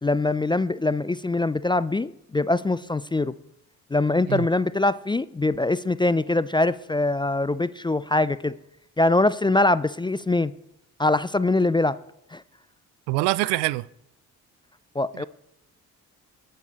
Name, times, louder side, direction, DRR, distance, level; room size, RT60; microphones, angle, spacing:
voice 1, 0.0-3.3 3.9-8.5 9.0-10.5 11.0-12.0 12.3-12.4 15.0-15.2, left 2 dB, 10° left, 0.4 m, -23 dB
voice 2, 13.1-13.9 15.2-15.3, right 19 dB, 75° right, 0.5 m, -24 dB
18.5 x 6.7 x 4.2 m
hypercardioid pair, 45°, 43 cm